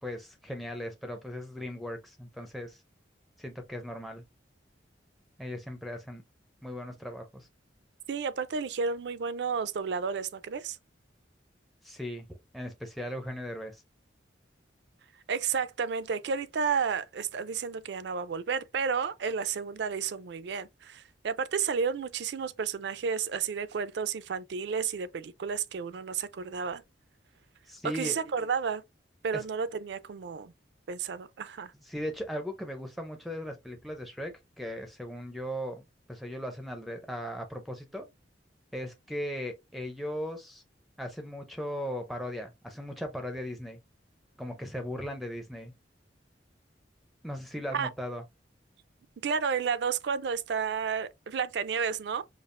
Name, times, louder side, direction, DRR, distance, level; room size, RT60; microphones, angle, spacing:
voice 1, 0.0-2.8 3.4-4.2 5.4-6.2 6.6-7.5 11.8-13.8 27.7-28.2 29.3-29.4 31.8-35.8 36.1-38.1 38.7-40.6 41.0-43.8 44.4-45.7 47.2-48.2, equal, ahead, 0.4 m, -38 dB
voice 2, 8.1-10.8 15.3-26.8 27.8-28.8 29.2-30.5 30.9-31.7 47.7-47.9 49.2-52.2, right 6 dB, 65° right, 0.4 m, -31 dB
5.2 x 2.3 x 2.5 m
head